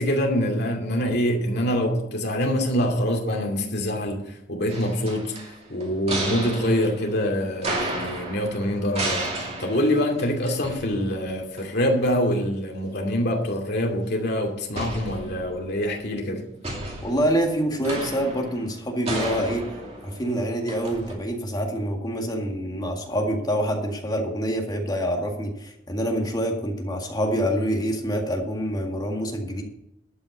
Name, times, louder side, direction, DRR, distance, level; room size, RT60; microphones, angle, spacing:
voice 1, 0.0-4.2 4.5-5.4 5.7-16.4, equal, 60° left, 1 dB, 2.6 m, -25 dB
sound 1, 4.7-11.3 11.6-11.7 14.8-15.8 16.6-21.1, right 2 dB, 35° right, 2.5 m, -33 dB
voice 2, 17.0-19.6 20.0-29.6, equal, 20° left, 1 dB, 1.9 m, -26 dB
12.0 x 5.8 x 8.3 m, 0.81 s
head